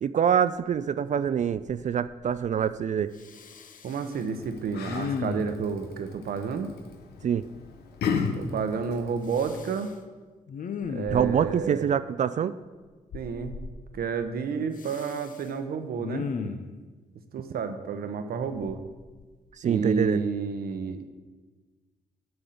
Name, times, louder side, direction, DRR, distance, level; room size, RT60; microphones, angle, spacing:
voice 1, 0.0-3.1 7.2-7.4 11.1-12.5 19.6-20.3, right 8 dB, 50° right, 13 dB, 0.4 m, -25 dB
Respiratory sounds, 0.7-0.8 1.3-1.8 2.1-2.8 3.2-4.2 4.9-5.7 9.3-9.9 10.5-11.5 13.1-13.7 14.8-15.5 16.0-16.7 18.5-19.5 19.9-20.1, left 6 dB, 55° left, 0.8 m, -36 dB
voice 2, 3.8-6.7 8.4-9.9 10.9-11.8 13.1-13.5 13.9-16.3 17.3-18.8 19.6-21.0, right 5 dB, 70° right, 8 dB, 0.9 m, -30 dB
Yell, 4.1-9.6, left 5 dB, 80° left, 0.9 m, -35 dB
7.9 x 5.4 x 7.7 m, 1.3 s
supercardioid pair, 60°, 16 cm